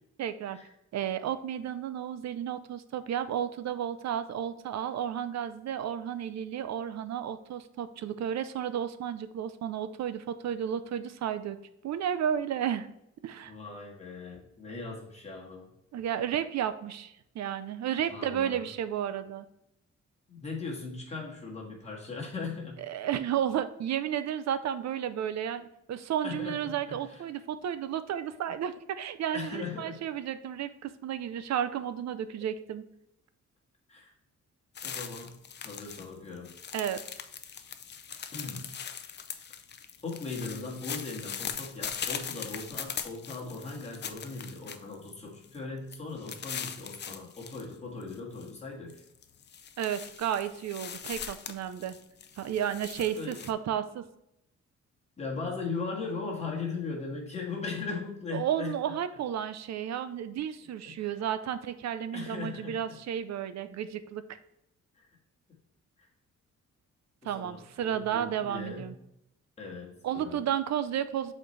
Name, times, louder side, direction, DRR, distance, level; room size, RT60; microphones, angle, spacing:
voice 1, 0.2-0.6 0.9-11.6 11.8-12.9 13.2-13.5 15.9-19.5 22.8-32.8 36.7-37.0 49.8-52.0 52.4-54.1 58.3-64.4 67.2-68.9 70.0-71.3, right 9 dB, 65° right, 12 dB, 0.6 m, -32 dB
voice 2, 13.5-15.7 18.1-18.7 20.3-22.8 26.2-27.2 29.3-30.0 33.9-34.1 34.8-35.4 35.6-36.5 38.3-38.8 40.0-49.0 53.0-53.4 55.2-58.9 61.0-61.1 62.1-63.0 65.0-65.1 66.0-66.1 67.2-68.9 69.6-70.4, left 4 dB, 20° left, -2 dB, 1.8 m, -39 dB
sound 1, 34.7-36.1 36.3-45.1 45.4-45.6 45.9-47.6 48.0-48.5 48.9-53.5, left 7 dB, 40° left, 0.5 m, -40 dB
7.6 x 4.3 x 3.2 m, 0.80 s
wide cardioid pair, 155°, 29 cm